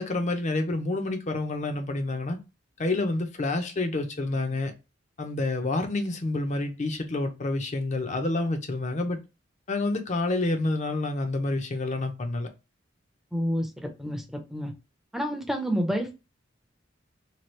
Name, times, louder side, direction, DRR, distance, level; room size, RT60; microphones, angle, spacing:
voice 1, 0.0-2.4 2.8-4.7 5.2-9.2 9.7-12.5, left 2 dB, 40° left, 0.6 m, -28 dB
voice 2, 13.3-14.7 15.1-16.1, equal, ahead, 0.6 m, -29 dB
2.9 x 2.4 x 3.1 m
head